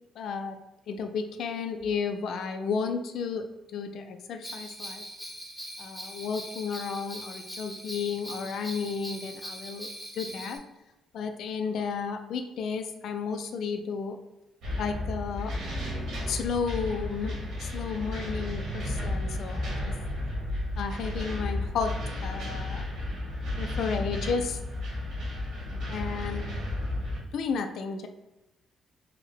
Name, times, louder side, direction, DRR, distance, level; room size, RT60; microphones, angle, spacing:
voice 1, 0.2-0.6 0.9-5.0 5.8-10.6 11.1-14.2 14.8-15.5 16.2-19.9 20.8-22.0 22.2-22.9 23.6-24.6 25.9-26.5 27.2-28.1, left 5 dB, 70° left, 7 dB, 0.3 m, -33 dB
Bell, 4.4-10.6, equal, ahead, 0.8 m, -41 dB
sound 1, 14.6-27.2, left 1 dB, 75° right, 1.3 m, -33 dB
3.3 x 2.1 x 3.6 m, 1.0 s
cardioid pair, 90°, 0 cm